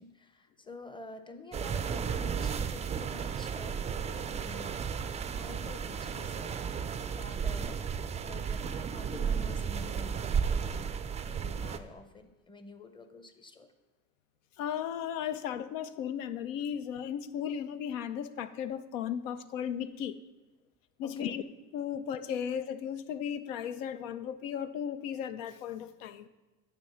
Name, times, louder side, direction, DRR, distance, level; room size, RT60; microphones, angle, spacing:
voice 1, 0.0-5.0 5.3-7.9 8.2-10.9 11.2-13.7 21.0-21.4, left 2 dB, 15° left, 9 dB, 0.7 m, -49 dB
sound 1, 1.5-11.8, right 6 dB, 20° right, 0.3 m, -34 dB
voice 2, 14.6-20.2 21.0-21.4 21.7-26.2, left 9 dB, 85° left, 13 dB, 0.5 m, -35 dB
8.9 x 3.4 x 5.6 m, 1.2 s
supercardioid pair, 80°, 38 cm